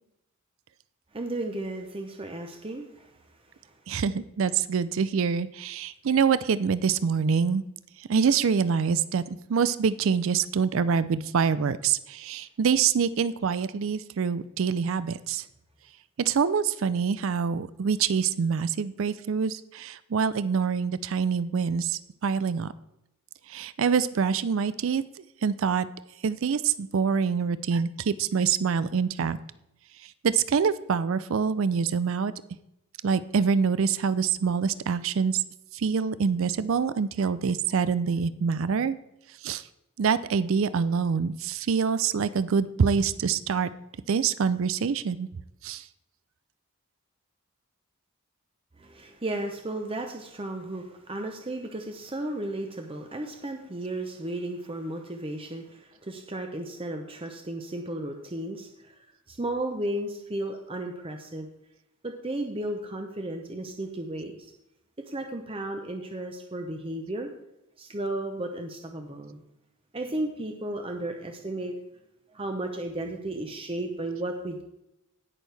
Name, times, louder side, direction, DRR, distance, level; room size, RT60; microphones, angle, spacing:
voice 1, 1.1-3.1 48.8-58.9 59.3-61.5 62.0-64.3 65.1-67.3 67.8-69.4 69.9-71.7 72.3-74.6, right 1 dB, 25° right, 4 dB, 0.7 m, -34 dB
voice 2, 3.9-7.6 8.1-9.2 9.5-15.4 16.2-22.7 23.5-25.0 25.4-25.9 26.2-29.4 30.2-32.3 33.0-35.4 35.7-39.0 39.4-39.6 40.0-43.7 44.1-45.3 45.6-45.8, right 6 dB, 60° right, 15 dB, 0.4 m, -25 dB
17.5 x 6.3 x 3.4 m, 0.87 s
head